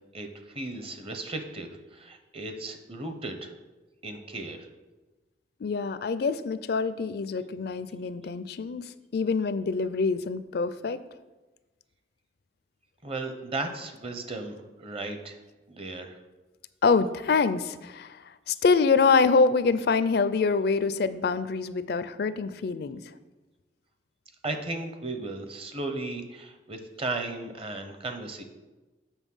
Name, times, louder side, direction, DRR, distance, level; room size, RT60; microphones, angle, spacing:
voice 1, 0.1-3.5 4.0-4.7 13.0-15.4 15.7-16.2 24.4-28.4, right 2 dB, 35° right, 6 dB, 0.9 m, -35 dB
voice 2, 5.6-11.0 16.8-18.2 18.5-23.0, left 4 dB, 60° left, 14 dB, 0.4 m, -25 dB
7.2 x 6.4 x 5.5 m, 1.2 s
head